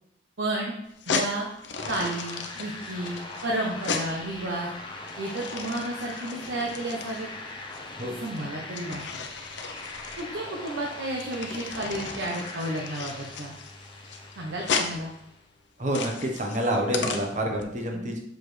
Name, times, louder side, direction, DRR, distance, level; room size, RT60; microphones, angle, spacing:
voice 1, 0.4-0.7 1.1-1.5 1.9-4.7 5.2-7.3 8.2-9.0 10.2-13.5 14.4-15.1 17.9-18.1, right 1 dB, 85° right, -2 dB, 0.9 m, -32 dB
sound 1, 0.9-17.6, left 4 dB, 75° left, 0.7 m, -35 dB
sound 2, 1.8-15.5, left 2 dB, 25° left, 0.8 m, -41 dB
voice 2, 15.8-18.2, right 1 dB, 40° right, 2 dB, 1.1 m, -28 dB
6.5 x 4.8 x 3.3 m, 0.78 s
head